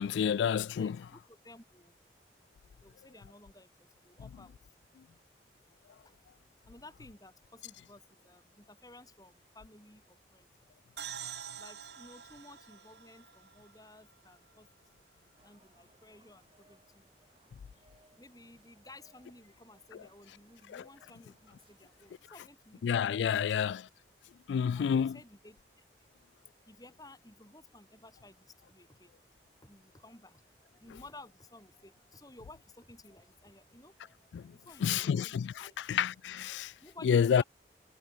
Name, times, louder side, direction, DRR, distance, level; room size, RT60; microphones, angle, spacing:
voice 1, 0.0-1.0 20.7-20.8 22.8-23.8 24.5-25.2 34.3-34.4 34.8-36.7 37.0-37.4, left 7 dB, 85° left, 0.3 m, -29 dB
voice 2, 0.8-2.0 2.8-4.8 5.6-5.7 6.0-6.2 6.6-10.5 11.6-15.0 15.4-17.0 17.7-17.9 18.2-23.7 24.7-26.1 26.7-29.1 29.6-35.7 36.8-37.4, left 2 dB, 20° left, 7.7 m, -56 dB
sound 1, 11.0-14.5, right 9 dB, 75° right, 4.2 m, -46 dB
sound 2, 15.4-22.2, right 2 dB, 30° right, 5.1 m, -68 dB
head